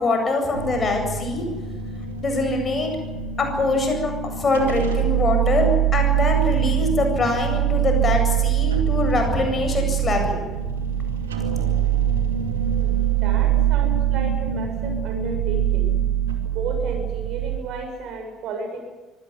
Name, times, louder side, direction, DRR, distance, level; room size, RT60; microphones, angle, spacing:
voice 1, 0.0-1.4 2.2-2.9 3.4-10.4, left 2 dB, 30° left, 4 dB, 7.8 m, -23 dB
sound 1, 0.5-17.6, right 10 dB, 75° right, 2.4 m, -23 dB
voice 2, 12.8-15.9 16.5-18.8, right 3 dB, 55° right, 4 dB, 7.0 m, -33 dB
24.5 x 17.0 x 9.7 m, 1.2 s
figure-of-eight pair, 55°, 0 cm